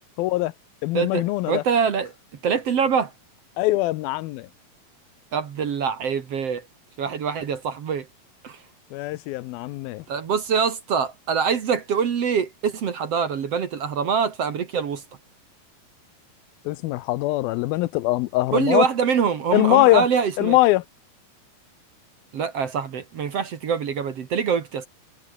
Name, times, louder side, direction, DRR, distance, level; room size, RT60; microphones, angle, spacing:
voice 1, 0.2-0.5 0.8-1.6 3.6-4.5 8.9-10.0 16.7-18.9 19.5-20.1 20.4-20.8, left 18 dB, 90° left, 2.5 m, -22 dB
voice 2, 0.9-2.1 2.4-3.1 5.3-6.7 7.0-8.1 8.4-8.6 10.1-15.0 18.5-20.6 22.3-24.9, right 6 dB, 50° right, 2.3 m, -24 dB
omnidirectional pair, 4.3 m